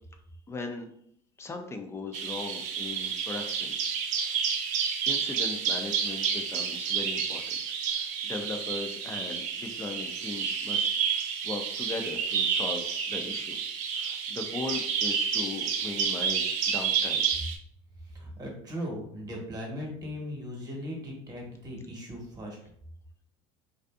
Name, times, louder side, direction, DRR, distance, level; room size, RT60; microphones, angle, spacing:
voice 1, 0.5-0.9 1.4-3.8 4.2-4.4 5.1-7.6 7.9-13.6 14.0-17.3, left 3 dB, 20° left, 4 dB, 0.5 m, -38 dB
Bird vocalization bird call bird song, 2.1-17.6, right 7 dB, 65° right, 0.4 m, -30 dB
voice 2, 18.2-22.6, equal, 30° right, -1 dB, 1.1 m, -38 dB
2.6 x 2.4 x 2.3 m, 0.67 s
supercardioid pair, 90°, 14 cm